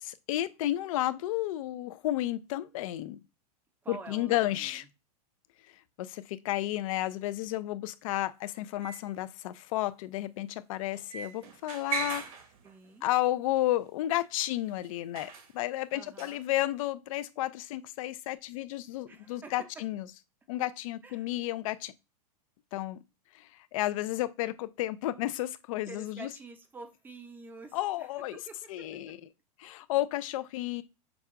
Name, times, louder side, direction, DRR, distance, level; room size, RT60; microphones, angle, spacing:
voice 1, 0.0-3.2 3.9-4.8 6.0-12.2 13.0-20.1 20.5-21.9 22.7-23.0 23.3-26.3 27.7-28.4 28.7-29.2 29.6-30.8, left 15 dB, 55° left, 0.5 m, -32 dB
voice 2, 3.8-4.8 12.6-13.0 15.9-16.4 19.1-19.5 20.6-20.7 21.0-21.3 25.9-28.8, right 3 dB, 10° right, 0.6 m, -48 dB
sound 1, 8.8-9.1 10.9-12.9 13.6-13.7 14.8-14.9 15.2-15.5 16.2-16.4, right 6 dB, 60° right, 1.1 m, -38 dB
6.0 x 2.3 x 3.7 m
supercardioid pair, 150°, 21 cm